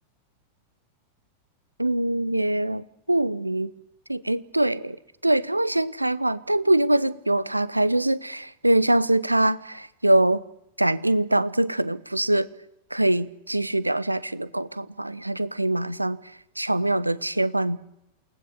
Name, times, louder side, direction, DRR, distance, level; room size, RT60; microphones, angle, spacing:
voice 1, 1.8-3.7 4.1-5.0 5.2-10.4 10.8-12.5 12.9-16.2 16.6-17.8, right 1 dB, 85° right, 18 dB, 0.9 m, -23 dB
28.5 x 19.0 x 7.0 m, 0.84 s
figure-of-eight pair, 90°, 0 cm